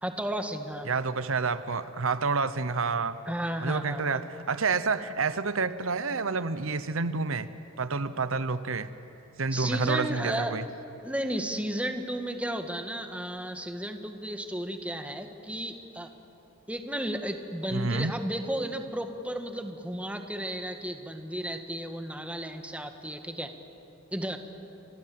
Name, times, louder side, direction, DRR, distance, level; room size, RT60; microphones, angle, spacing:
voice 1, 0.0-0.9 3.3-4.2 9.5-10.6 11.0-16.1 16.7-23.5 24.1-24.4, right 1 dB, 5° right, 6 dB, 1.6 m, -33 dB
voice 2, 0.8-3.2 3.6-7.5 7.8-8.9 9.4-10.6 17.7-18.1, right 4 dB, 80° right, 13 dB, 0.9 m, -29 dB
30.0 x 25.5 x 7.8 m, 3.0 s
head